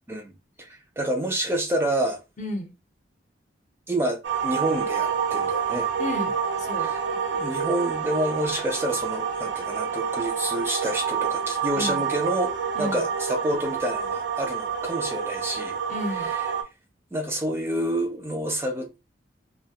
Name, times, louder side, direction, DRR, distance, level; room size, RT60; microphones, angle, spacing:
voice 1, 0.6-2.2 3.9-5.9 6.8-7.0 7.3-15.8 17.1-19.0, right 1 dB, 15° right, 0.3 m, -28 dB
voice 2, 2.4-2.7 6.0-6.9 11.7-12.1 12.7-13.0 15.9-16.3, left 1 dB, 45° left, 0.7 m, -32 dB
sound 1, 4.2-16.6, right 7 dB, 75° right, 0.4 m, -28 dB
2.2 x 2.1 x 2.7 m
head